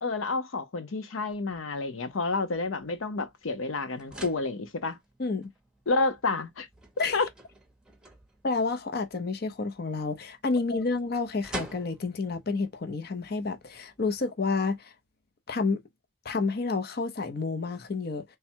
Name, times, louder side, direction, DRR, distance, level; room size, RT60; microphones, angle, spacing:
voice 1, 0.0-5.0 5.9-6.7 7.1-7.3 10.7-10.8, left 3 dB, 90° left, 0.7 m, -29 dB
sound 1, 1.3-14.2, right 1 dB, 5° right, 0.8 m, -49 dB
voice 2, 5.2-5.5 7.0-7.2 8.4-14.9 15.5-15.8 16.2-18.2, left 4 dB, 50° left, 0.7 m, -29 dB
3.4 x 2.2 x 4.4 m
head